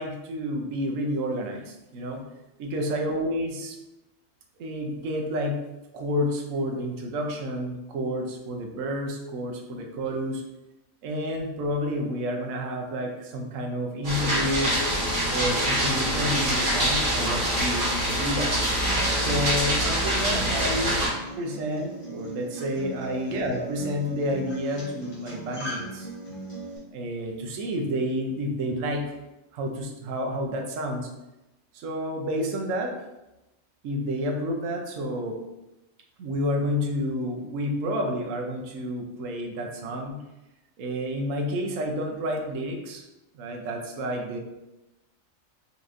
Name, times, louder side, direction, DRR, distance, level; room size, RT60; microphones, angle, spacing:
voice 1, 0.0-2.2 2.6-3.8 4.6-5.6 5.9-10.4 11.0-14.7 15.3-18.6 19.2-21.0 21.4-26.1 26.9-29.2 29.5-31.1 31.7-32.9 33.8-35.4 36.2-40.2 40.8-43.0 43.3-44.4, equal, 70° right, 2 dB, 1.0 m, -30 dB
sound 1, 14.0-21.1, equal, 40° right, 1.4 m, -25 dB
Acoustic guitar, 18.8-26.8, right 2 dB, 20° left, 0.8 m, -39 dB
4.1 x 3.0 x 2.5 m, 0.97 s
omnidirectional pair, 1.4 m